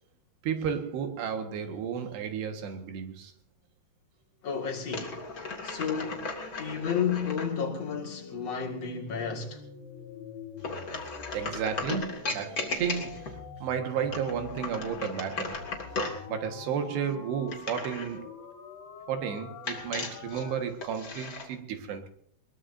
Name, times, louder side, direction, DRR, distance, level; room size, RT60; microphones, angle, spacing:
voice 1, 0.4-3.3 11.3-15.7 16.3-18.5 19.1-22.1, right 7 dB, 80° right, 3.7 m, -33 dB
voice 2, 4.4-5.2 5.6-9.6, left 7 dB, 45° left, 2.8 m, -32 dB
sound 1, 4.9-7.5 10.6-13.4 14.0-16.3 17.5-18.2 19.7-21.5, left 3 dB, 30° left, 2.0 m, -36 dB
sound 2, 5.6-20.6, left 6 dB, 75° left, 4.2 m, -46 dB
21.5 x 21.0 x 2.7 m
omnidirectional pair, 4.8 m